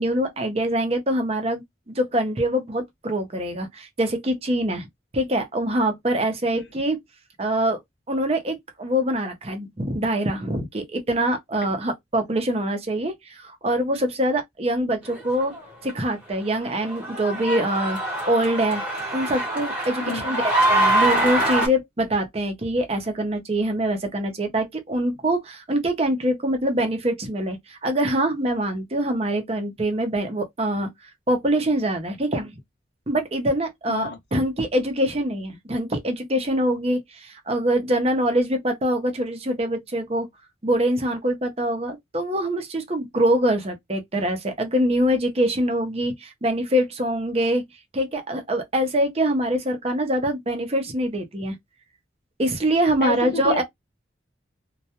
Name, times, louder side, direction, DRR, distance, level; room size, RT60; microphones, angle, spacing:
voice 1, 0.0-4.9 5.1-7.0 7.4-7.8 8.1-15.5 15.8-18.0 18.3-18.8 19.1-20.4 20.7-32.6 33.1-40.3 40.6-47.6 47.9-51.5 52.4-53.6, right 1 dB, 35° right, 0.6 m, -24 dB
sound 1, 15.1-15.6 15.9-16.0 16.5-21.7, right 1 dB, 5° right, 1.0 m, -24 dB
voice 2, 20.0-20.4 33.9-34.2 53.0-53.6, left 4 dB, 60° left, 0.7 m, -30 dB
2.3 x 2.1 x 2.8 m
head